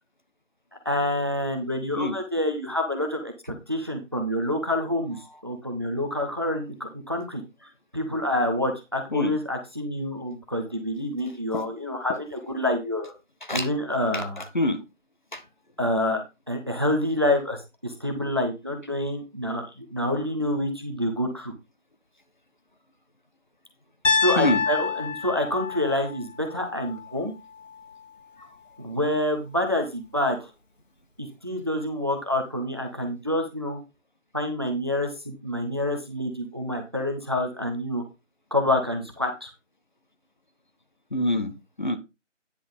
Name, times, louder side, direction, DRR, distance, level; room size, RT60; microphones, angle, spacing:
voice 1, 0.8-3.3 3.7-5.2 5.4-7.4 7.9-13.1 13.5-14.4 15.8-16.2 16.5-21.5 24.2-27.3 28.8-30.5 31.2-33.8 34.3-38.0 38.5-39.5, left 1 dB, 20° right, 0.9 m, -27 dB
voice 2, 14.1-14.8 15.3-15.4 24.4-24.6 28.4-28.5 41.1-42.0, left 1 dB, 40° left, 1.0 m, -26 dB
Piano, 24.0-28.1, left 5 dB, 80° left, 2.0 m, -28 dB
9.9 x 4.2 x 5.3 m
figure-of-eight pair, 170°, 37 cm